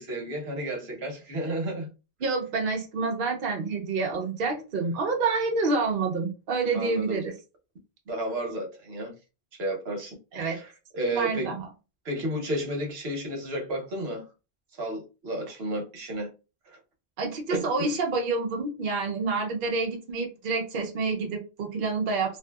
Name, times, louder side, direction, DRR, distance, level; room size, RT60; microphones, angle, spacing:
voice 1, 0.0-1.9 6.7-7.2 8.1-9.1 9.5-11.5 12.0-14.2 14.8-16.3 17.5-17.7, right 1 dB, 80° right, 1.1 m, -32 dB
voice 2, 2.2-7.3 10.3-10.6 11.1-11.6 17.2-22.4, right 4 dB, 60° right, 0.7 m, -28 dB
2.6 x 2.6 x 2.2 m
omnidirectional pair, 1.0 m